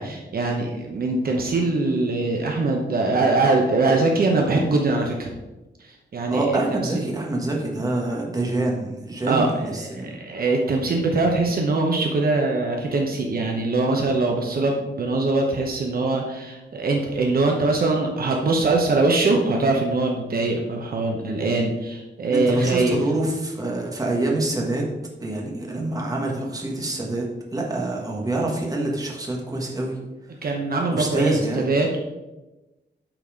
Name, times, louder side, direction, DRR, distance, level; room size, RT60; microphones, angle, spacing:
voice 1, 0.0-5.3 6.1-6.9 9.3-23.0 30.4-32.0, right 3 dB, 55° right, 1 dB, 0.9 m, -22 dB
voice 2, 6.3-10.1 22.3-24.9 25.2-30.0 30.9-31.7, right 2 dB, 20° right, -1 dB, 1.4 m, -26 dB
9.0 x 4.1 x 5.0 m, 1.1 s
wide cardioid pair, 170°, 18 cm